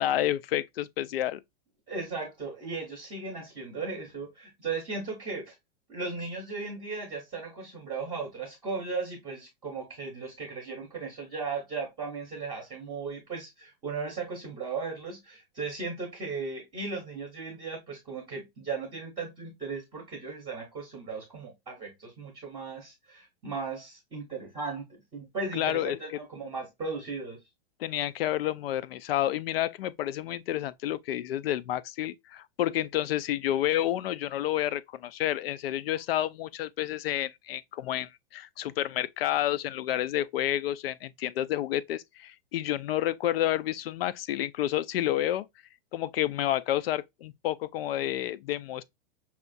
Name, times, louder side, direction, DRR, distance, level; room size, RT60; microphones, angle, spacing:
voice 1, 0.0-1.4 25.5-26.0 27.8-45.5 45.9-48.8, left 13 dB, 80° left, 0.5 m, -30 dB
voice 2, 1.9-5.6 5.9-24.9 25.1-27.4, right 4 dB, 15° right, 0.8 m, -36 dB
5.6 x 2.4 x 2.5 m
supercardioid pair, 175°, 29 cm